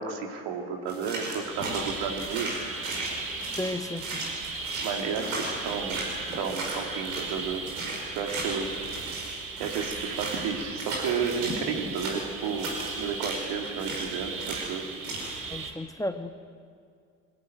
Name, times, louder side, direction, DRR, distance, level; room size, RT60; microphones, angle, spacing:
voice 1, 0.0-2.5 4.8-6.0 6.3-7.7 8.1-8.7 9.6-12.7 13.0-14.8, right 6 dB, 70° right, 3 dB, 2.8 m, -32 dB
sound 1, 0.9-7.3 7.7-11.6 11.9-14.1 14.4-14.7 15.0-15.4, right 2 dB, 90° right, 5.3 m, -35 dB
sound 2, 1.4-15.7, right 4 dB, 55° right, 3.3 m, -38 dB
voice 2, 3.6-4.2 15.5-16.3, left 1 dB, 10° left, 8 dB, 1.3 m, -33 dB
22.0 x 16.5 x 9.2 m, 2.2 s
hypercardioid pair, 55°, 41 cm